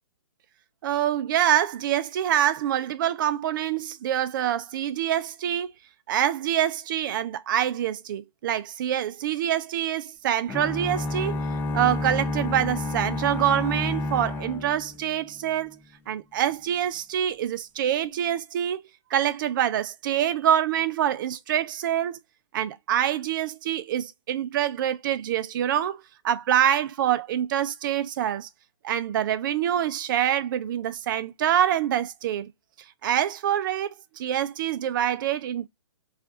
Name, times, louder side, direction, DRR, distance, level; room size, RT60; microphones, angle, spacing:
voice 1, 0.8-5.7 6.1-11.4 11.7-15.8 16.1-18.8 19.1-22.2 22.5-28.5 28.8-32.5 33.0-35.7, right 10 dB, 40° right, 0.5 m, -25 dB
sound 1, 10.5-15.5, left 2 dB, 10° left, 0.4 m, -30 dB
4.3 x 2.5 x 2.4 m
hypercardioid pair, 135°, 16 cm